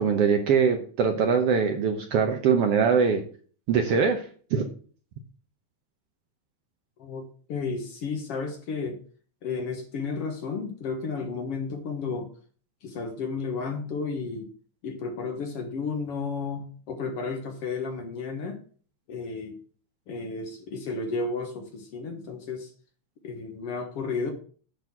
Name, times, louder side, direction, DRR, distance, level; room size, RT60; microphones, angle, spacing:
voice 1, 0.0-3.2 3.7-4.2 4.5-4.6, right 6 dB, 65° right, 5 dB, 1.6 m, -22 dB
voice 2, 7.0-9.0 9.4-12.3 12.8-14.5 14.8-18.6 19.1-19.6 20.1-22.7 23.2-24.3, left 4 dB, 60° left, 4 dB, 1.9 m, -32 dB
9.1 x 4.1 x 7.0 m, 0.43 s
omnidirectional pair, 3.4 m